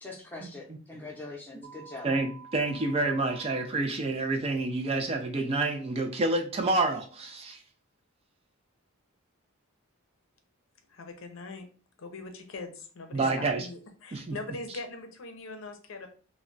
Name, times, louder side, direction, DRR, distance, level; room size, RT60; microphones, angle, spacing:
voice 1, 0.0-2.1, left 2 dB, 10° left, 0.6 m, -42 dB
sound 1, 1.6-3.6, right 5 dB, 60° right, 0.8 m, -49 dB
voice 2, 2.0-7.6 13.1-13.7 14.1-14.4, right 2 dB, 30° right, 0.3 m, -28 dB
voice 3, 10.9-11.7 12.0-16.1, left 3 dB, 65° left, 0.5 m, -41 dB
2.2 x 2.1 x 3.7 m
head